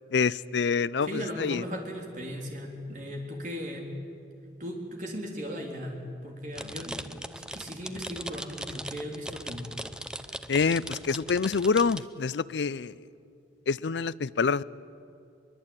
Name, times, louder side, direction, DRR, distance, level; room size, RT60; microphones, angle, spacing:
voice 1, 0.1-1.6 10.5-13.0 13.7-14.6, left 5 dB, 85° left, 19 dB, 0.5 m, -26 dB
voice 2, 1.1-3.9 4.6-7.0 7.3-9.7, equal, 45° right, 0 dB, 3.7 m, -37 dB
sound 1, 6.6-12.0, right 1 dB, 5° right, 0.5 m, -39 dB
23.0 x 22.0 x 8.9 m, 2.5 s
head